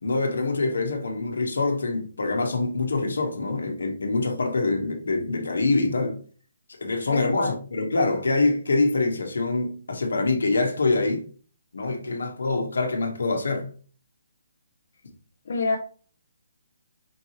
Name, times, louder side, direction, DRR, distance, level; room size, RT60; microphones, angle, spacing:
voice 1, 0.0-6.2 6.8-11.3 11.7-13.7, left 3 dB, 85° left, 1.4 m, -25 dB
voice 2, 7.1-7.5 15.5-15.8, left 3 dB, 55° left, 0.8 m, -26 dB
5.2 x 2.8 x 3.1 m
hypercardioid pair, 165°, 0 cm